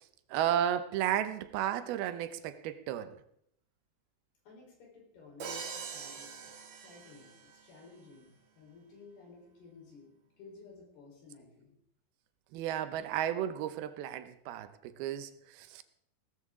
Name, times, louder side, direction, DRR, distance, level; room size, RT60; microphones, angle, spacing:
voice 1, 0.3-3.2 12.5-15.8, right 10 dB, 85° right, 11 dB, 2.7 m, -33 dB
voice 2, 4.4-11.8, left 4 dB, 85° left, -1 dB, 6.1 m, -55 dB
Crash cymbal, 5.4-7.6, right 6 dB, 55° right, 1.6 m, -43 dB
17.0 x 14.0 x 3.7 m, 0.71 s
omnidirectional pair, 4.4 m